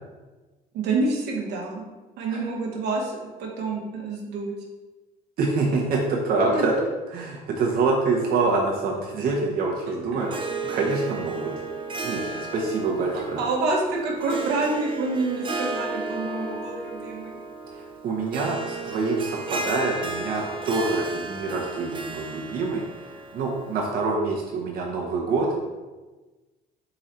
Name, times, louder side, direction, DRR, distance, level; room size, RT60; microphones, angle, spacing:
voice 1, 0.7-1.8 2.2-4.5 6.5-6.6 10.2-10.4 12.3-12.4 13.4-17.4, right 3 dB, 85° right, -1 dB, 1.0 m, -27 dB
voice 2, 5.4-6.7 7.1-10.3 10.6-11.5 12.0-13.4 17.7-25.5, right 3 dB, 60° right, -2 dB, 0.8 m, -26 dB
Harp, 10.2-24.0, right 3 dB, 30° right, 0.5 m, -34 dB
3.9 x 3.1 x 4.1 m, 1.2 s
cardioid pair, 110°, 17 cm